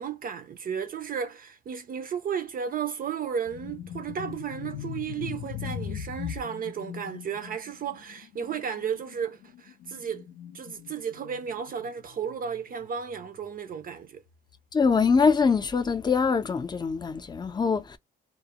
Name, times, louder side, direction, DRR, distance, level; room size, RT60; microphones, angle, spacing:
voice 1, 0.0-10.3 10.5-14.2, right 7 dB, 45° right, 0.4 m, -34 dB
sound 1, 3.5-13.4 13.7-14.0 14.7-15.7, left 9 dB, 75° left, 0.4 m, -40 dB
voice 2, 14.7-18.0, left 5 dB, 20° left, 0.5 m, -23 dB
2.1 x 2.0 x 2.8 m
cardioid pair, 90°, 20 cm